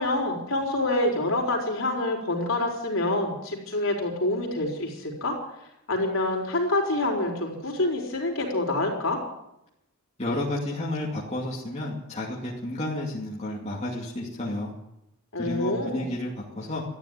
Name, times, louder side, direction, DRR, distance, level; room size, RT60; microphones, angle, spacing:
voice 1, 0.0-5.3 5.9-9.2 15.3-16.0, left 2 dB, 60° left, 1 dB, 4.5 m, -26 dB
voice 2, 10.2-14.7 15.4-16.8, left 1 dB, 30° left, -4 dB, 2.5 m, -31 dB
14.0 x 10.5 x 9.7 m, 0.84 s
head